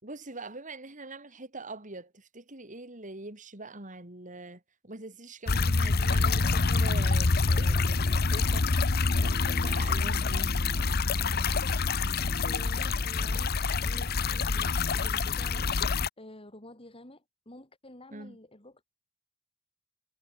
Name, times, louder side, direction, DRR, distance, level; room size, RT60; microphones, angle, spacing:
voice 1, 0.0-8.7 9.2-10.5 18.1-18.4, right 2 dB, 40° right, 4.1 m, -43 dB
sound 1, 5.5-16.1, left 4 dB, 50° left, 0.9 m, -26 dB
voice 2, 12.4-15.7 16.2-18.8, left 1 dB, 30° left, 5.6 m, -49 dB
head